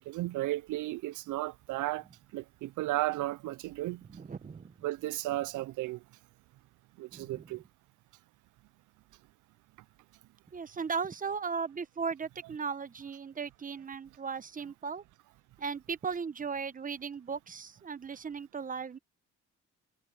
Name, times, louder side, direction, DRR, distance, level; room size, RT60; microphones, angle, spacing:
voice 1, 0.0-4.2 4.8-6.0 7.0-7.6, right 17 dB, 80° right, 0.5 m, -34 dB
voice 2, 4.1-4.7 7.1-7.6 10.5-15.0 15.6-19.0, right 5 dB, 25° right, 0.9 m, -37 dB
cardioid pair, 90°, 30 cm